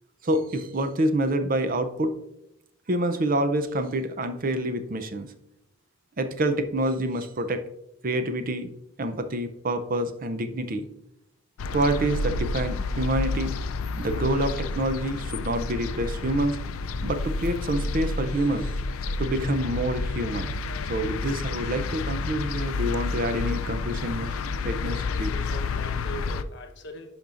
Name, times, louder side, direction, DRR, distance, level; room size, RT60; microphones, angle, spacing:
voice 1, 0.2-2.2 2.9-5.3 6.2-7.7 8.0-8.7 9.0-10.9 11.7-13.5 14.0-16.6 17.0-18.7 19.2-20.5 20.9-24.3 24.6-25.3, right 1 dB, 40° right, 9 dB, 0.5 m, -27 dB
sound 1, 11.6-26.4, left 3 dB, 75° left, 0.4 m, -30 dB
voice 2, 24.9-27.1, equal, 55° left, 4 dB, 1.0 m, -40 dB
10.5 x 5.3 x 2.5 m, 0.81 s
head